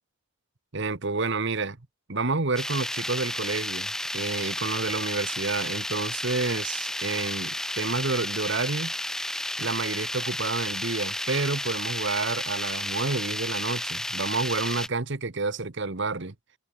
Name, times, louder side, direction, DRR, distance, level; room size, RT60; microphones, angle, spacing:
voice 1, 0.7-1.8 2.1-8.9 9.6-16.3, right 3 dB, 55° right, 1.2 m, -29 dB
sound 1, 2.6-14.9, left 1 dB, ahead, 0.4 m, -32 dB
head